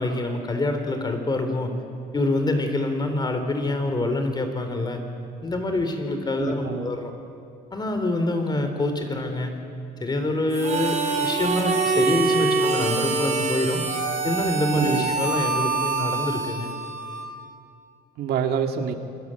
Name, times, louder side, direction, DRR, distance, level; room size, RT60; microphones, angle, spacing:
voice 1, 0.0-1.7 2.1-5.0 5.4-7.1 7.7-9.5 10.0-13.8 14.2-16.7, left 2 dB, 25° left, 6 dB, 4.0 m, -26 dB
voice 2, 6.4-7.0 14.7-15.1 18.2-19.0, right 7 dB, 70° right, 5 dB, 2.2 m, -27 dB
Harmonica, 10.5-17.4, right 4 dB, 45° right, 6.7 m, -25 dB
27.5 x 21.5 x 9.1 m, 2.4 s
cardioid pair, 110°, 17 cm